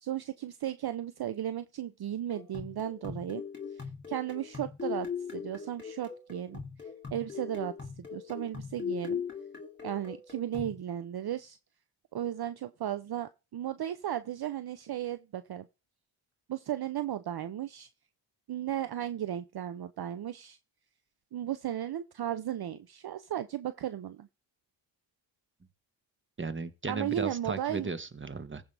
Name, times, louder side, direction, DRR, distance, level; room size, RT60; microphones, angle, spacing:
voice 1, 0.0-3.4 3.7-9.2 9.8-11.6 12.1-15.7 16.5-17.9 18.5-20.6 21.3-24.3 26.9-27.9, right 11 dB, 50° right, 0.7 m, -35 dB
sound 1, 2.3-10.8, left 7 dB, 20° left, 2.8 m, -40 dB
voice 2, 26.4-28.6, right 4 dB, 25° right, 1.4 m, -35 dB
15.0 x 5.4 x 3.4 m
cardioid pair, 70°, 48 cm